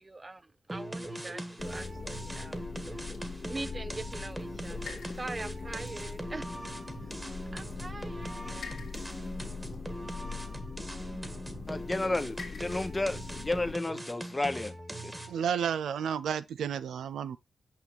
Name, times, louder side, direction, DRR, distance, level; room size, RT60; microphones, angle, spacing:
voice 1, 0.1-0.4 0.7-2.6 3.5-6.4 7.5-8.7, right 2 dB, 35° right, 0.5 m, -42 dB
sound 1, 0.7-15.5, right 1 dB, 20° right, 1.5 m, -41 dB
sound 2, 1.6-13.7, left 5 dB, 75° left, 1.7 m, -42 dB
voice 2, 11.7-14.7 15.0-15.1, left 2 dB, 30° left, 0.8 m, -32 dB
voice 3, 15.3-17.4, right 8 dB, 90° right, 0.4 m, -31 dB
6.0 x 5.7 x 3.1 m
supercardioid pair, 40°, 0 cm